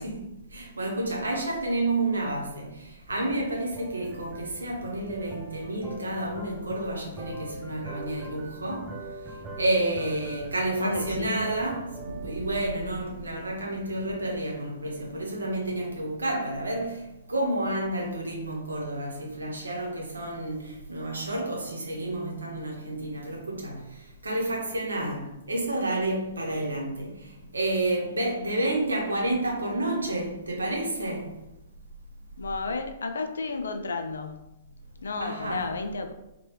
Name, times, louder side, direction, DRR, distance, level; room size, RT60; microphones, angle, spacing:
voice 1, 0.0-9.0 9.6-31.4 35.2-35.7, right 1 dB, 80° right, 0.8 m, -30 dB
sound 1, 3.1-14.7, right 2 dB, 15° right, 0.5 m, -43 dB
voice 2, 10.8-11.5 32.4-34.4 35.0-36.1, left 3 dB, 75° left, 0.3 m, -32 dB
3.0 x 2.2 x 3.1 m
figure-of-eight pair, 115°, 0 cm